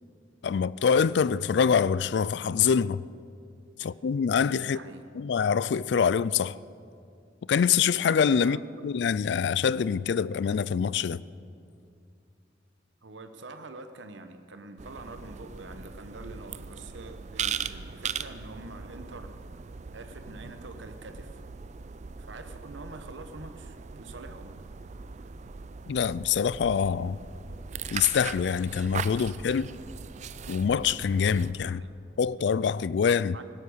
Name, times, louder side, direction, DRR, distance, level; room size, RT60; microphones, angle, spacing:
voice 1, 0.4-3.0 3.8-4.8 5.2-6.6 7.5-11.2 25.9-27.2 27.9-29.7 30.5-31.8 32.2-33.4, left 6 dB, 65° left, 0.3 m, -25 dB
voice 2, 4.6-5.1 8.4-8.6 13.0-19.3 19.9-21.4 22.2-24.6 31.7-31.9 33.3-33.4, right 2 dB, 85° right, 1.0 m, -45 dB
sound 1, 14.8-31.5, right 6 dB, 40° right, 0.4 m, -39 dB
16.5 x 12.5 x 6.4 m
head